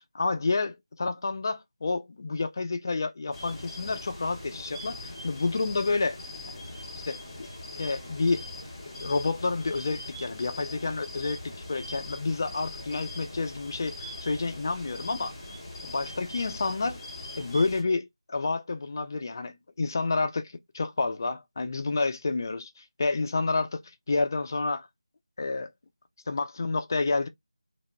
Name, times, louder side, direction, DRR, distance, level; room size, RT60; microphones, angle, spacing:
voice 1, 0.1-6.2 7.1-7.5 7.8-8.5 8.9-15.3 15.8-17.0 17.4-23.8 24.1-24.9 25.4-25.7 26.3-27.3, left 3 dB, 35° left, 0.3 m, -29 dB
sound 1, 3.3-17.8, left 2 dB, 20° left, 0.8 m, -41 dB
2.3 x 2.0 x 3.1 m
figure-of-eight pair, 170°, 3 cm